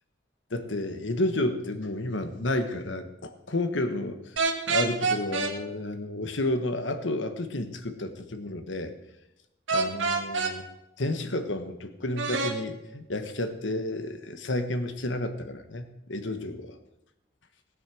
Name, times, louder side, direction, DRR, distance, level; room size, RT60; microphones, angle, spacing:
voice 1, 0.5-4.2 4.7-8.9 9.7-10.7 11.0-16.8, left 1 dB, 75° left, 8 dB, 1.3 m, -31 dB
sound 1, 4.4-5.5 9.7-10.5 12.2-12.6, right 4 dB, 90° right, 1.8 m, -26 dB
18.0 x 8.4 x 6.3 m, 0.89 s
head